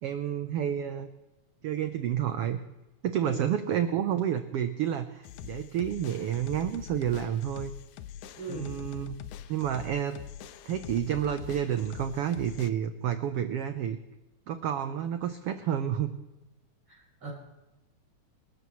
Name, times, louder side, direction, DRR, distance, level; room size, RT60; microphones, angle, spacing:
voice 1, 0.0-1.1 1.6-2.6 3.0-7.7 8.5-9.2 9.5-10.2 10.7-14.0 14.5-16.1, right 9 dB, 80° right, 9 dB, 1.3 m, -30 dB
sound 1, 5.2-12.7, left 10 dB, 80° left, 2.1 m, -44 dB
voice 2, 8.4-8.8 16.9-17.3, right 2 dB, 40° right, -6 dB, 7.2 m, -39 dB
29.0 x 13.0 x 3.1 m, 1.0 s
omnidirectional pair, 3.6 m